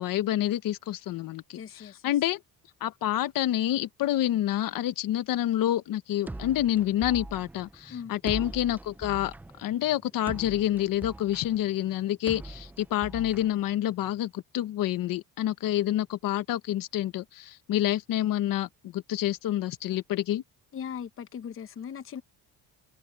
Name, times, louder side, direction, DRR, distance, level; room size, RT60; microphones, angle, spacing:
voice 1, 0.0-2.4 2.8-20.4, left 13 dB, 65° left, 1.2 m, -28 dB
voice 2, 1.5-2.1 7.9-8.2 20.7-22.2, left 8 dB, 35° left, 1.0 m, -39 dB
Psycho Beat, 6.3-14.2, right 2 dB, 5° right, 0.3 m, -42 dB
cardioid pair, 155°, 36 cm